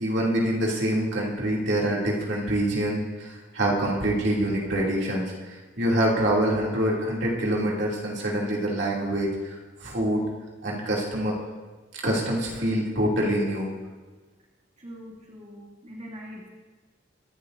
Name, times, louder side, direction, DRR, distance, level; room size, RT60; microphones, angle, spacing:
voice 1, 0.0-10.3 10.6-11.3 12.0-13.7, right 1 dB, 65° right, -4 dB, 2.8 m, -25 dB
voice 2, 14.8-16.5, equal, 35° right, -5 dB, 2.4 m, -42 dB
24.5 x 12.0 x 2.7 m, 1.3 s
head